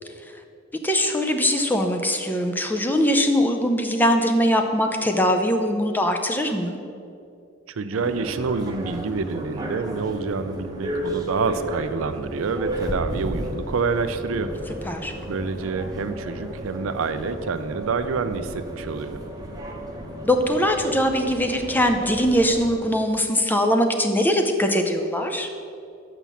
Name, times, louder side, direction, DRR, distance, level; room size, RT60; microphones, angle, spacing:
voice 1, 0.8-6.8 14.9-15.1 20.2-25.5, equal, 10° left, 5 dB, 0.5 m, -21 dB
voice 2, 7.7-14.5 15.3-19.2, right 4 dB, 75° right, 11 dB, 0.4 m, -27 dB
sound 1, 7.9-22.8, right 1 dB, 20° right, 0.9 m, -33 dB
6.1 x 5.7 x 6.9 m, 2.5 s
head